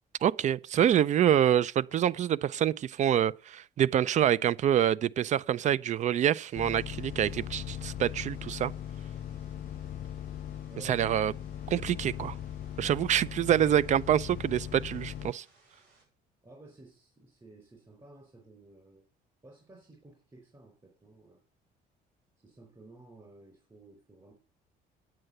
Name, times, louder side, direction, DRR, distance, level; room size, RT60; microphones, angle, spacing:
voice 1, 0.2-8.7 10.8-11.3 11.7-12.3 12.8-15.4, right 10 dB, 45° right, 0.4 m, -26 dB
sound 1, 6.5-16.0, right 3 dB, 60° right, 7.8 m, -64 dB
sound 2, 6.6-15.3, left 10 dB, 50° left, 0.6 m, -39 dB
voice 2, 16.4-19.1 19.4-21.4 22.4-24.3, right 2 dB, 25° right, 4.2 m, -54 dB
9.4 x 8.9 x 6.6 m
cardioid pair, 110°, 17 cm